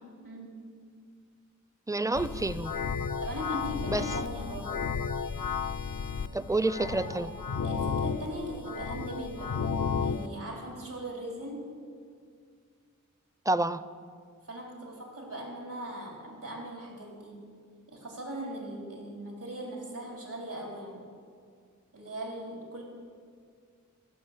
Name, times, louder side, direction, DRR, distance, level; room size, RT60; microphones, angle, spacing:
voice 1, 0.2-0.6 3.2-4.8 6.8-9.6 10.0-11.7 14.4-17.4 17.9-21.1 21.9-22.8, right 1 dB, 85° right, -2 dB, 3.6 m, -39 dB
voice 2, 1.9-2.7 3.9-4.0 6.3-7.3 13.5-13.8, right 2 dB, 10° right, 14 dB, 0.5 m, -28 dB
sound 1, 2.1-10.3, left 6 dB, 80° left, 0.6 m, -33 dB
15.5 x 6.2 x 8.0 m, 2.1 s
wide cardioid pair, 45°, 31 cm